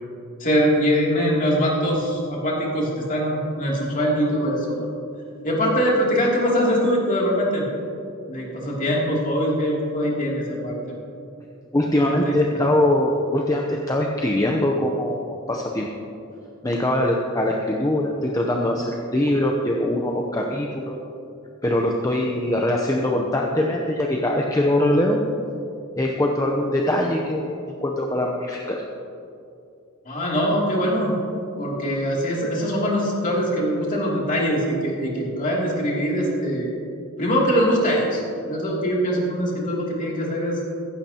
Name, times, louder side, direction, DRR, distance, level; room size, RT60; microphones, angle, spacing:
voice 1, 0.4-4.9 5.4-7.7 8.3-10.8 12.0-12.3 30.0-31.2 31.6-36.7 37.2-38.2 38.5-40.6, equal, 35° left, -4 dB, 2.8 m, -22 dB
voice 2, 11.7-15.9 16.6-21.0 21.6-25.2 26.0-28.8, left 1 dB, 15° left, 0 dB, 0.7 m, -22 dB
16.0 x 15.0 x 2.9 m, 2.6 s
head